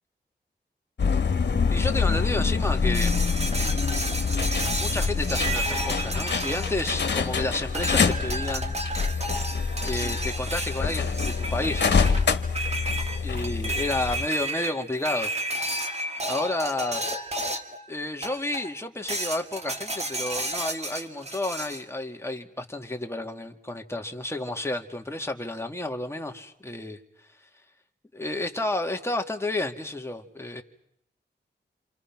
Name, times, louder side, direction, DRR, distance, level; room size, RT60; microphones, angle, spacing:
sound 1, 1.0-14.3, left 5 dB, 70° left, 1.8 m, -26 dB
voice 1, 1.7-3.2 4.8-8.8 9.8-12.2 13.2-15.3 16.3-17.0 17.9-27.0 28.1-30.6, left 2 dB, 15° left, 4 dB, 2.2 m, -31 dB
sound 2, 2.9-7.3 7.7-17.8 18.2-18.7 19.1-21.8, right 1 dB, 35° right, 2.3 m, -32 dB
28.0 x 28.0 x 6.0 m, 0.73 s
wide cardioid pair, 75°, 19 cm